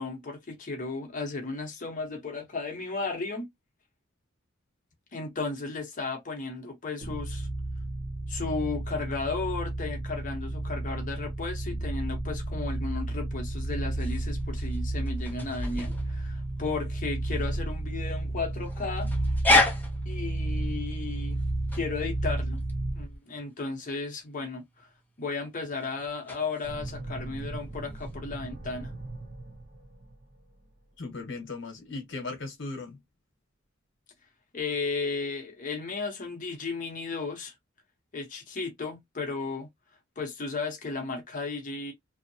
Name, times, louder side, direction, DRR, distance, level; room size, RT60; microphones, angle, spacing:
voice 1, 0.0-3.5 5.1-7.5 8.3-19.1 20.1-21.4 21.7-22.6 22.9-24.9 25.2-28.9 34.5-37.5 38.1-39.7 40.2-41.9, left 3 dB, 40° left, 0.8 m, -34 dB
sound 1, 7.0-23.2, right 1 dB, 70° right, 0.9 m, -32 dB
sound 2, 13.8-28.2, left 2 dB, 10° left, 0.7 m, -33 dB
sound 3, 26.6-30.7, right 2 dB, 40° right, 0.7 m, -41 dB
voice 2, 31.0-33.0, left 3 dB, 65° left, 1.1 m, -37 dB
2.7 x 2.1 x 2.7 m
head